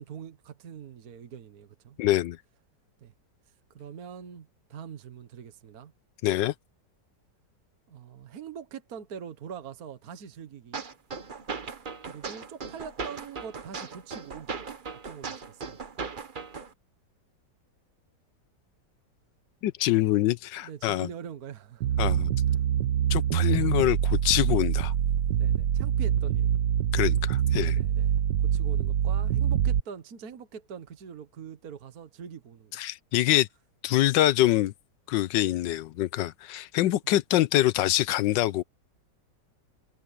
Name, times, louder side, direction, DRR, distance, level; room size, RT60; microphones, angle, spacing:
voice 1, 0.0-2.0 3.0-3.1 3.8-5.9 7.9-10.8 12.0-14.5 15.1-15.8 20.6-22.0 22.5-22.6 25.4-26.5 27.7-28.1 28.4-32.8 37.0-37.1, right 7 dB, 55° right, 1.7 m, -43 dB
voice 2, 2.0-2.4 6.2-6.5 19.6-21.1 22.0-22.3 23.1-24.9 26.9-27.8 32.8-33.5 33.8-34.7 35.1-38.6, left 14 dB, 80° left, 1.3 m, -25 dB
sound 1, 10.7-16.7, right 5 dB, 35° right, 1.0 m, -38 dB
sound 2, 21.8-29.8, right 10 dB, 75° right, 1.5 m, -25 dB
omnidirectional pair, 2.0 m